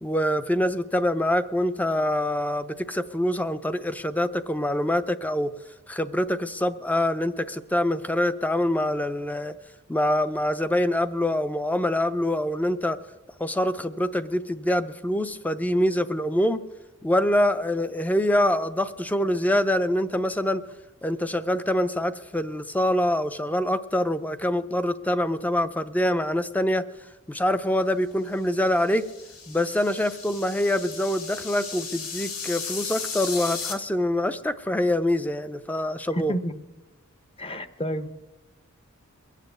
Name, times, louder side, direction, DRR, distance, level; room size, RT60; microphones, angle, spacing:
voice 1, 0.0-5.5 5.9-9.5 9.9-13.0 13.4-16.6 17.0-20.6 21.0-26.8 27.3-29.0 29.5-36.3, left 1 dB, 5° left, 12 dB, 0.5 m, -25 dB
sound 1, 28.6-33.7, left 5 dB, 85° left, 2.1 m, -36 dB
voice 2, 36.1-36.5 37.4-38.1, equal, 25° left, 11 dB, 0.9 m, -30 dB
22.0 x 7.5 x 7.9 m, 1.1 s
head